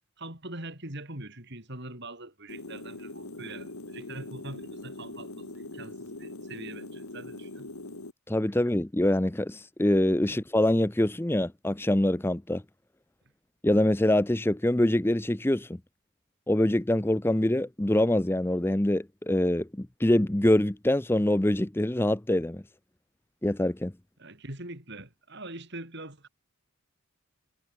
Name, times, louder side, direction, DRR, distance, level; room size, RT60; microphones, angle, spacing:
voice 1, 0.2-7.7 10.3-10.4 24.2-26.3, right 2 dB, 50° right, 5.6 m, -43 dB
sound 1, 2.5-8.1, left 2 dB, 75° left, 2.6 m, -42 dB
voice 2, 8.3-12.6 13.6-15.8 16.5-22.6 23.4-23.9, left 1 dB, 10° left, 0.6 m, -25 dB
head